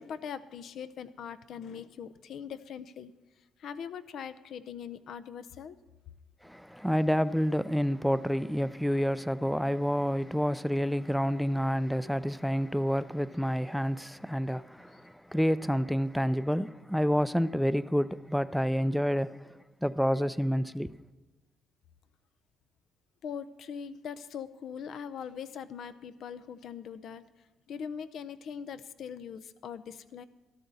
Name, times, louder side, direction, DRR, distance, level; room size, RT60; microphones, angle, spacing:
voice 1, 0.0-3.1 3.6-5.8 23.2-27.2 27.7-30.3, left 7 dB, 70° left, 0.6 m, -41 dB
voice 2, 6.4-19.4 19.8-20.9, equal, ahead, 0.4 m, -28 dB
13.0 x 13.0 x 4.1 m
cardioid pair, 90°, 0 cm